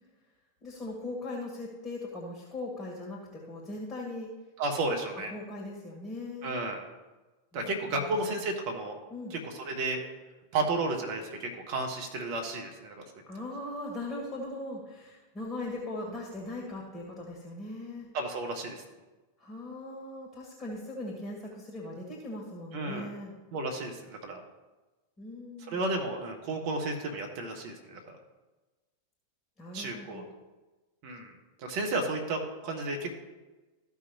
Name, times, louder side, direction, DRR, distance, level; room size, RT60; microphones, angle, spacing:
voice 1, 0.6-4.3 5.3-6.7 7.5-8.3 9.1-9.4 13.3-18.1 19.4-23.3 25.2-25.8 29.6-30.3, left 2 dB, 10° left, -3 dB, 2.3 m, -39 dB
voice 2, 4.6-5.3 6.4-6.8 7.5-9.0 9.3-10.0 10.5-13.0 18.1-18.8 22.7-23.1 23.5-24.4 25.7-28.2 29.7-30.2 31.0-31.3 31.6-33.1, right 2 dB, 50° right, 3 dB, 1.5 m, -32 dB
14.5 x 6.0 x 3.0 m, 1.2 s
figure-of-eight pair, 90°, 0 cm